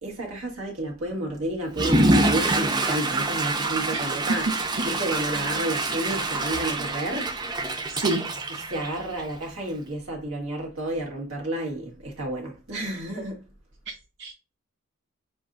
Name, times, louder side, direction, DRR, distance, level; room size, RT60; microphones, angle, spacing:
voice 1, 0.0-4.5 4.8-7.4 8.7-13.4, right 1 dB, 85° right, 1.8 m, -31 dB
Water / Toilet flush, 1.7-9.4, right 2 dB, 20° right, 0.5 m, -26 dB
voice 2, 4.5-4.9 7.9-8.3 13.9-14.0 14.2-14.3, right 2 dB, 60° right, 0.7 m, -29 dB
6.7 x 2.7 x 2.5 m
head